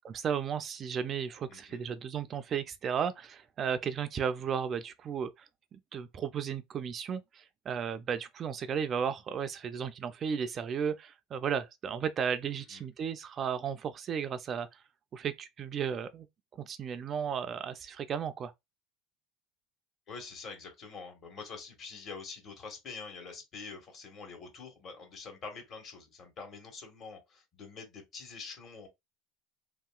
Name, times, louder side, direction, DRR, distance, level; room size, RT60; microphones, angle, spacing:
voice 1, 0.0-5.5 5.7-14.8 15.1-16.3 16.6-18.5, right 7 dB, 35° right, 0.3 m, -34 dB
voice 2, 1.5-1.8 12.7-12.8 20.1-28.9, left 4 dB, 45° left, 1.4 m, -46 dB
2.9 x 2.8 x 2.3 m
supercardioid pair, 115°, 0 cm